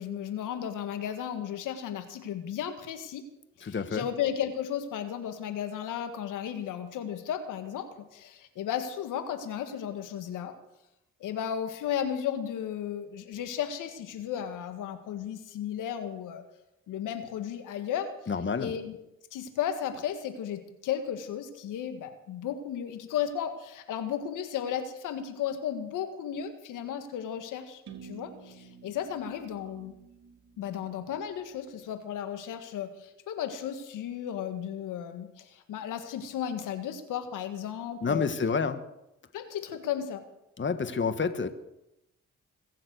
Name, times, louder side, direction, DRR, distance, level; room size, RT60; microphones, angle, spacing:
voice 1, 0.0-3.3 3.6-10.5 11.2-16.4 16.9-18.1 18.6-19.0 19.3-29.9 30.6-38.3 39.3-40.2, left 9 dB, 85° left, 8 dB, 1.8 m, -34 dB
voice 2, 3.6-4.1 18.3-18.7 38.0-38.8 40.6-41.5, left 5 dB, 40° left, 10 dB, 1.6 m, -29 dB
sound 1, 27.9-31.7, right 7 dB, 70° right, 2.5 m, -51 dB
22.0 x 7.6 x 8.1 m, 0.87 s
supercardioid pair, 60°, 31 cm